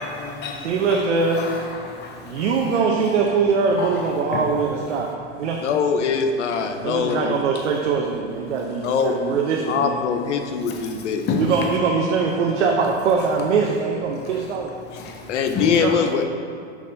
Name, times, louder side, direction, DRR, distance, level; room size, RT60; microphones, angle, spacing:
voice 1, 0.0-1.0 1.3-2.4 3.8-4.0 4.3-4.4 7.1-7.2 10.7-10.9 11.3-11.4 15.0-15.8, left 5 dB, 30° left, 0.9 m, -30 dB
voice 2, 0.6-1.4 2.2-5.1 5.4-5.6 6.8-10.0 11.4-14.7 15.8-15.9, right 5 dB, 80° right, 0.8 m, -22 dB
voice 3, 5.6-7.4 8.8-9.1 9.7-11.2 15.3-16.2, left 6 dB, 80° left, 0.8 m, -22 dB
6.3 x 5.4 x 3.9 m
hypercardioid pair, 115°, 35 cm